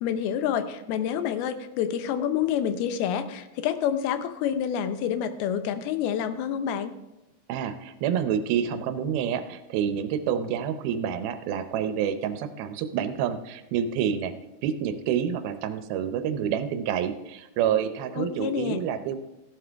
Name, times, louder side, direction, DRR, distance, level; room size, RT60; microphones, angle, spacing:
voice 1, 0.0-6.9 18.2-18.8, left 9 dB, 85° left, 10 dB, 2.7 m, -28 dB
voice 2, 7.5-14.3 14.6-19.2, right 8 dB, 80° right, 9 dB, 2.5 m, -28 dB
15.0 x 11.5 x 3.4 m, 1.0 s
omnidirectional pair, 4.4 m